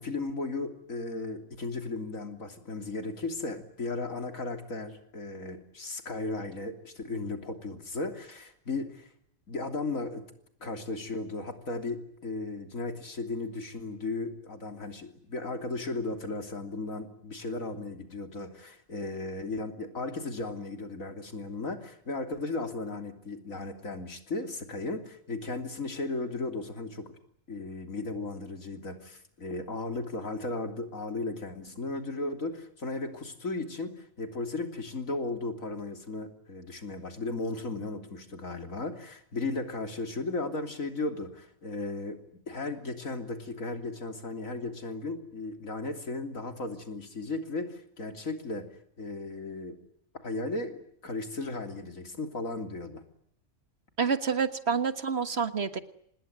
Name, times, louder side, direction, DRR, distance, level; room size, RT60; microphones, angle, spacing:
voice 1, 0.0-9.1 9.5-10.2 10.6-27.1 27.5-42.2 42.5-48.7 49.0-49.8 50.2-53.0, left 3 dB, 80° left, 6 dB, 3.6 m, -35 dB
voice 2, 54.0-55.8, right 6 dB, 50° right, 11 dB, 1.7 m, -28 dB
26.5 x 20.5 x 9.4 m, 0.71 s
omnidirectional pair, 1.4 m